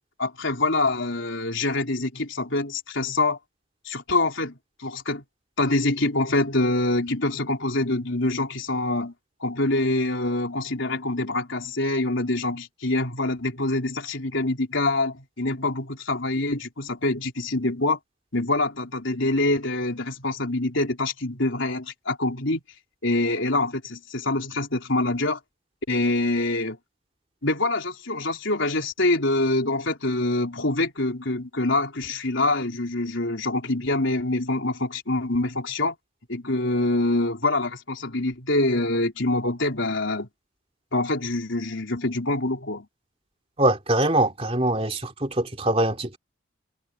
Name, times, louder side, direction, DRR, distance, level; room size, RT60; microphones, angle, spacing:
voice 1, 0.2-3.4 3.9-4.5 4.8-5.2 5.6-9.1 9.4-18.0 18.3-22.6 23.0-25.4 25.9-26.8 27.4-36.0 36.3-40.3 40.9-42.9, left 2 dB, 65° left, 3.9 m, -25 dB
voice 2, 43.6-46.2, right 1 dB, 30° right, 3.1 m, -23 dB
head